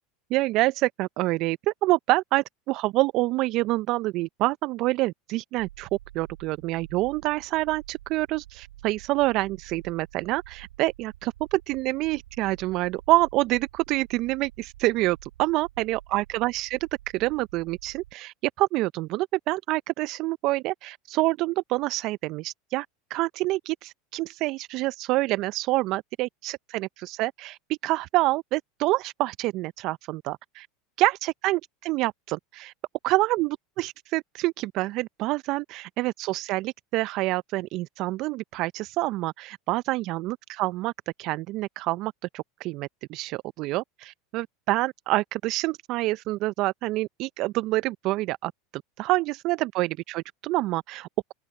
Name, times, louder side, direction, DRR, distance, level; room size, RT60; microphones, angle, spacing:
voice 1, 0.3-5.9 6.1-16.9 17.1-30.7 31.0-32.7 33.0-40.9 41.2-48.5 49.0-51.3, right 19 dB, 55° right, 0.5 m, -27 dB
sound 1, 5.6-18.1, right 14 dB, 75° right, 5.5 m, -49 dB
open air
hypercardioid pair, 90°, 0 cm